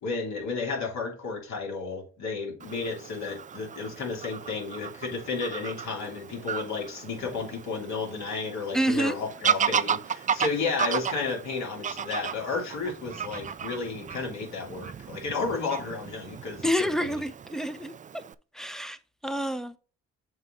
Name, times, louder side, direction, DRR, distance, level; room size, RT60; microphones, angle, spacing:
voice 1, 0.0-17.1, left 4 dB, 65° left, 2.8 m, -32 dB
Fowl / Bird vocalization bird call bird song, 2.6-18.3, right 7 dB, 25° right, 0.3 m, -34 dB
voice 2, 8.7-9.2 16.6-17.9 18.5-19.8, equal, ahead, 0.7 m, -28 dB
7.3 x 4.1 x 3.8 m
cardioid pair, 90°, 30 cm